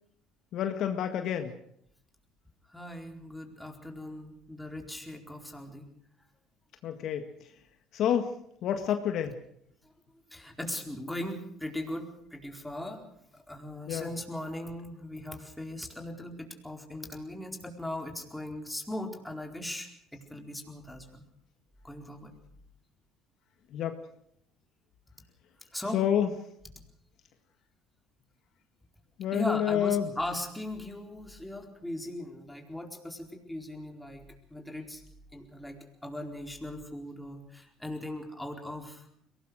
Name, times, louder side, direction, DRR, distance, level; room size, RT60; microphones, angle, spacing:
voice 1, 0.5-1.5 6.8-7.3 7.9-8.3 8.6-9.4 13.9-14.1 23.7-24.0 25.9-26.3 29.2-30.1, left 9 dB, 60° left, 7 dB, 1.8 m, -28 dB
voice 2, 2.7-5.9 10.3-13.0 13.3-21.2 21.8-22.3 25.7-26.0 29.3-34.2 34.5-35.0 35.3-39.1, left 1 dB, 5° left, 2 dB, 4.4 m, -39 dB
22.5 x 18.5 x 6.5 m, 0.70 s
supercardioid pair, 80°, 0 cm